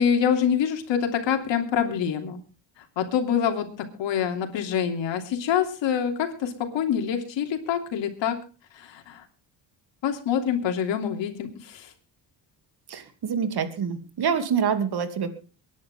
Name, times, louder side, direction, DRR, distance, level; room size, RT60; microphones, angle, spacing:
voice 1, 0.0-2.4 3.0-3.7 4.0-8.4 8.8-9.2 10.0-11.9, left 8 dB, 75° left, 4 dB, 3.1 m, -25 dB
voice 2, 12.9-15.3, right 7 dB, 55° right, 9 dB, 2.7 m, -26 dB
23.5 x 10.5 x 3.7 m, 0.34 s
cardioid pair, 80°, 45 cm